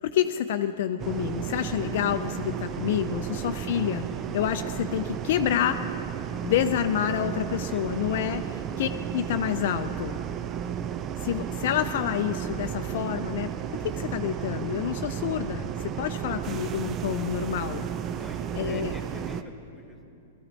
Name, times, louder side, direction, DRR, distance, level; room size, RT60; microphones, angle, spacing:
voice 1, 0.0-4.0 4.3-5.8 6.4-8.4 8.8-10.2 11.2-17.8 18.5-18.9, left 10 dB, 65° left, 8 dB, 0.5 m, -28 dB
sound 1, 1.0-19.4, right 9 dB, 30° right, 0.5 m, -33 dB
voice 2, 3.1-3.7 7.6-8.7 18.2-20.0, left 2 dB, 5° left, 2 dB, 1.9 m, -47 dB
17.5 x 13.5 x 4.0 m, 2.6 s
hypercardioid pair, 120°, 0 cm